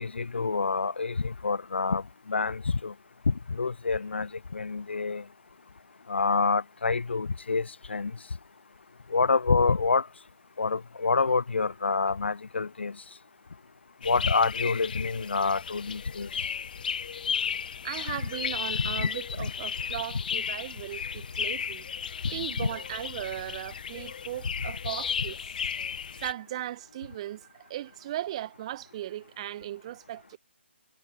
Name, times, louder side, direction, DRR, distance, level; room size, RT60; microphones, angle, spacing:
voice 1, 0.0-2.9 3.3-5.2 6.1-8.1 9.1-10.1 10.6-13.0 14.0-16.3 19.0-19.1 19.4-19.5 22.6-22.7, left 4 dB, 65° left, 0.7 m, -27 dB
sound 1, 14.0-26.3, left 7 dB, 45° left, 1.2 m, -34 dB
voice 2, 17.8-21.9 22.3-25.4 26.2-30.4, right 13 dB, 30° right, 2.2 m, -37 dB
figure-of-eight pair, 145°, 6 cm